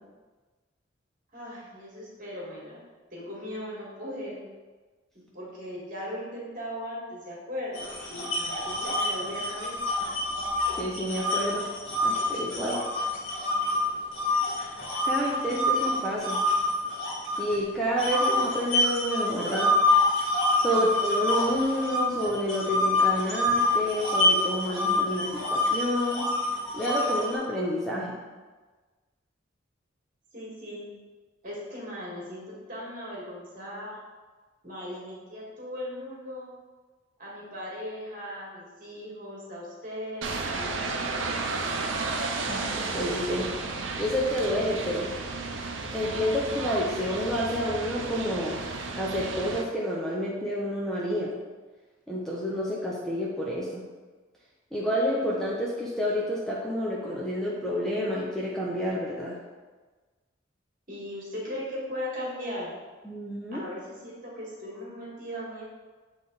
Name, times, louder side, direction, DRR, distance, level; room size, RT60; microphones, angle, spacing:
voice 1, 1.3-2.8 3.1-4.4 5.3-9.8 30.3-30.9 31.4-34.0 34.6-36.5 37.2-40.9 41.2-41.8 60.9-62.7 63.5-65.6, equal, 45° right, -5 dB, 1.9 m, -38 dB
sound 1, 7.7-13.8 14.1-17.6 18.0-27.4, left 2 dB, 75° left, 1.8 m, -26 dB
voice 2, 10.7-11.7 12.0-12.8 15.0-16.4 17.4-19.7 20.6-26.3 26.7-28.2 42.5-43.5 44.0-45.1 45.9-48.6 49.0-51.3 52.1-53.8 54.7-59.3 63.0-63.6, equal, ahead, -5 dB, 0.7 m, -29 dB
sound 2, 40.2-49.6, right 3 dB, 75° right, 0.6 m, -33 dB
7.3 x 3.5 x 3.9 m, 1.3 s
head